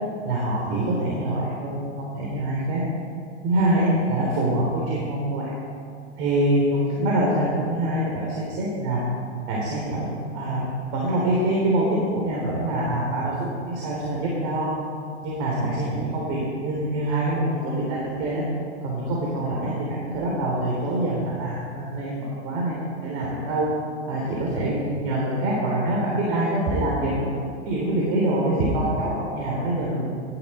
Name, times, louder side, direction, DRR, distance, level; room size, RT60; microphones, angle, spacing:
voice 1, 0.2-2.8 3.4-5.5 6.2-9.0 9.5-10.6 10.9-14.7 15.2-18.4 18.8-23.7 24.1-27.3 27.7-30.0, right 1 dB, 50° right, -4 dB, 3.6 m, -25 dB
18.5 x 11.5 x 4.4 m, 2.3 s
figure-of-eight pair, 90°, 34 cm